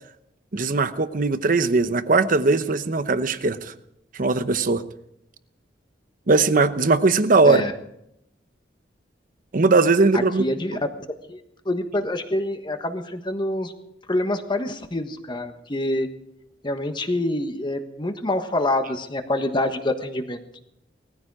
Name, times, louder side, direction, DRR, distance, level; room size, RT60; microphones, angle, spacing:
voice 1, 0.5-3.7 4.1-4.8 6.3-7.6 9.5-10.4, right 3 dB, 50° right, 12 dB, 0.9 m, -19 dB
voice 2, 10.1-10.9 11.3-11.4 11.6-13.7 14.1-16.1 16.6-20.4, left 1 dB, 25° left, 7 dB, 1.4 m, -26 dB
19.0 x 14.5 x 4.9 m, 0.78 s
head